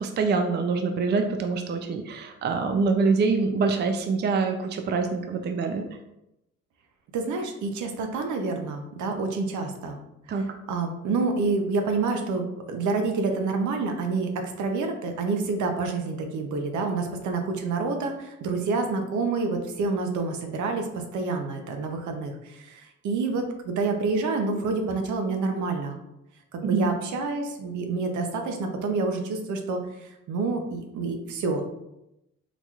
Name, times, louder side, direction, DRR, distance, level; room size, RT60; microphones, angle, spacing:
voice 1, 0.0-5.8 10.3-10.4 26.6-26.9, right 4 dB, 35° right, 5 dB, 0.4 m, -25 dB
voice 2, 7.1-10.0 10.3-10.4 10.7-26.0 26.5-31.6, right 3 dB, 75° right, 4 dB, 0.6 m, -28 dB
4.0 x 2.9 x 2.3 m, 0.88 s
cardioid pair, 90°, 30 cm